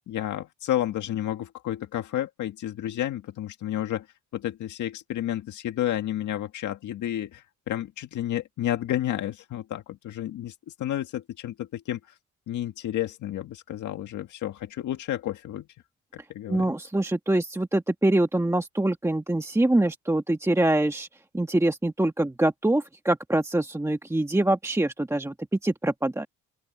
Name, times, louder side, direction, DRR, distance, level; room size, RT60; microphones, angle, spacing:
voice 1, 0.1-4.1 4.3-12.1 12.5-15.7 16.1-16.7, left 12 dB, 75° left, 1.9 m, -31 dB
voice 2, 16.5-21.1 21.3-25.3 25.6-26.3, right 1 dB, 10° right, 1.5 m, -24 dB
open air
cardioid pair, 90°, 30 cm